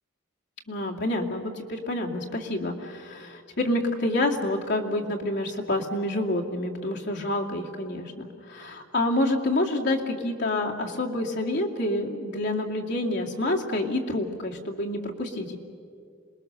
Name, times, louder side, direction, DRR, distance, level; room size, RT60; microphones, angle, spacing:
voice 1, 0.7-15.6, left 1 dB, 55° left, 0 dB, 2.4 m, -28 dB
27.0 x 21.0 x 6.8 m, 2.3 s
head